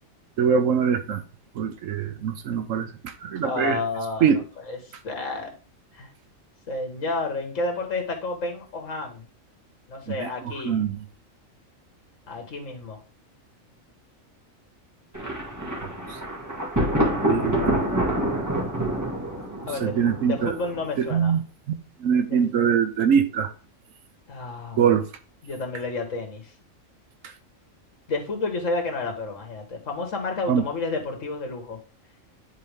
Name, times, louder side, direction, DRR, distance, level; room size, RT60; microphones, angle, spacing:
voice 1, 0.4-1.2 1.5-3.8 4.2-4.4 10.1-10.3 10.7-11.0 16.1-16.2 17.3-17.8 19.8-20.5 21.0-21.4 22.0-23.5 24.8-25.1 27.2-27.3 30.5-30.6, right 7 dB, 75° right, 1.1 m, -23 dB
voice 2, 3.4-4.3 4.6-5.5 5.9-6.1 6.7-9.3 9.9-10.8 12.3-13.0 19.7-21.4 22.3-22.4 24.3-25.0 25.4-26.5 28.1-31.8, left 3 dB, 70° left, 2.0 m, -31 dB
Thunder, 15.1-21.0, right 1 dB, 15° right, 2.0 m, -26 dB
9.9 x 4.1 x 3.5 m
omnidirectional pair, 1.4 m